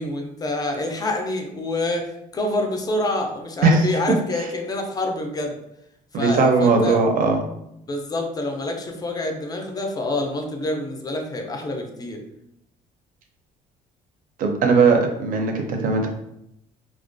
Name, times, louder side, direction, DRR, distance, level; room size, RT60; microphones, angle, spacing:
voice 1, 0.0-5.6 6.1-7.0 7.9-12.2, left 2 dB, 20° left, 3 dB, 0.4 m, -27 dB
voice 2, 6.1-7.4 14.4-16.1, right 4 dB, 55° right, 3 dB, 0.5 m, -18 dB
2.3 x 2.1 x 2.5 m, 0.79 s
cardioid pair, 110°, 17 cm